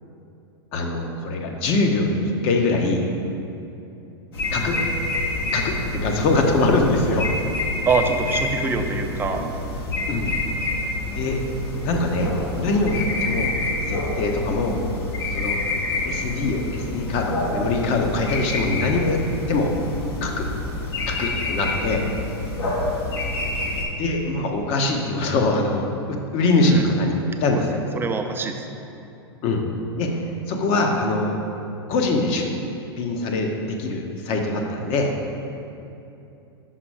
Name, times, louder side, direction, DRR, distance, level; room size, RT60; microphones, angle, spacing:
voice 1, 0.7-3.1 4.5-4.8 5.5-7.3 10.1-10.4 11.1-11.4 11.8-13.5 13.9-14.8 15.3-15.6 16.1-19.7 20.2-20.5 21.1-22.0 24.0-27.1 27.4-27.8 29.4-29.6 30.0-30.1 30.5-31.4 31.9-32.5 33.0-35.1, left 2 dB, 45° left, 2 dB, 1.0 m, -23 dB
sound 1, 4.3-23.8, left 2 dB, 70° left, 1.4 m, -27 dB
voice 2, 7.9-9.4 26.6-26.9 27.5-27.7 28.0-28.6, right 4 dB, 15° right, 5 dB, 0.5 m, -24 dB
5.7 x 5.2 x 4.9 m, 2.8 s
hypercardioid pair, 105°, 14 cm